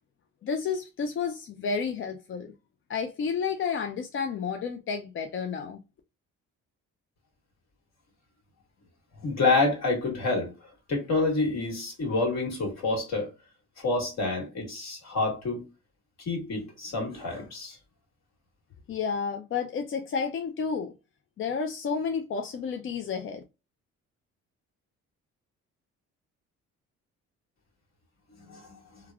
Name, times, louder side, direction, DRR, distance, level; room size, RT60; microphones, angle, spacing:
voice 1, 0.4-2.5 2.9-5.8 18.9-20.9 21.4-23.4, left 5 dB, 45° left, 0.4 m, -31 dB
voice 2, 9.2-10.5 10.9-13.3 13.8-15.6 16.2-17.8 28.5-28.6, left 3 dB, 60° left, 1.8 m, -27 dB
3.1 x 2.3 x 2.3 m
cardioid pair, 90°, 30 cm